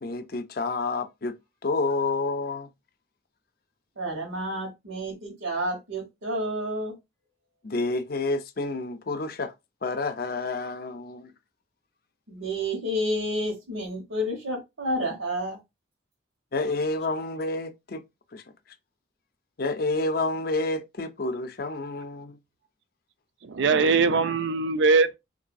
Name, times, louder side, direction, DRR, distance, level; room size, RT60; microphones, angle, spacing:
voice 1, 0.0-1.4 1.6-2.7 7.6-9.5 9.8-11.3 16.5-18.0 18.3-18.4 19.6-22.4, left 3 dB, 50° left, 0.5 m, -29 dB
voice 2, 4.0-6.9 12.3-15.6, equal, 90° right, 1.2 m, -30 dB
voice 3, 23.4-25.2, right 4 dB, 65° right, 0.4 m, -21 dB
3.7 x 2.6 x 2.6 m
head